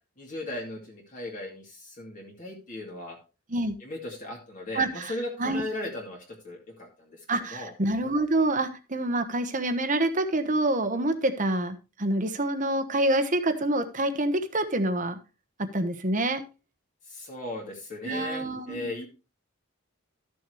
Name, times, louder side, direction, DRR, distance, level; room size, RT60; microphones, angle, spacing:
voice 1, 0.2-3.2 3.8-7.7 17.1-19.1, left 1 dB, 40° left, -1 dB, 2.5 m, -37 dB
voice 2, 4.7-5.1 5.4-5.6 7.3-15.2 15.7-16.4 18.0-19.1, right 1 dB, 35° right, 9 dB, 1.1 m, -27 dB
13.5 x 6.9 x 3.2 m, 0.30 s
head